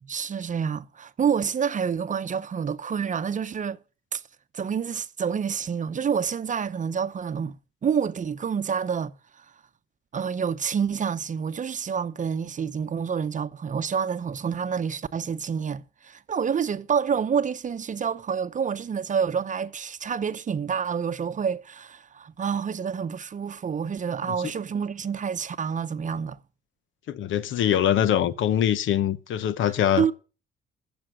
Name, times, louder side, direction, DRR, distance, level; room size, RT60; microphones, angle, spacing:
voice 1, 0.0-3.8 4.1-4.2 4.5-7.6 7.8-9.1 9.4-9.5 10.1-26.4 30.0-30.1, right 7 dB, 40° right, 0.7 m, -28 dB
voice 2, 27.1-30.1, left 10 dB, 80° left, 1.0 m, -23 dB
15.0 x 7.1 x 6.4 m
cardioid pair, 90°, 20 cm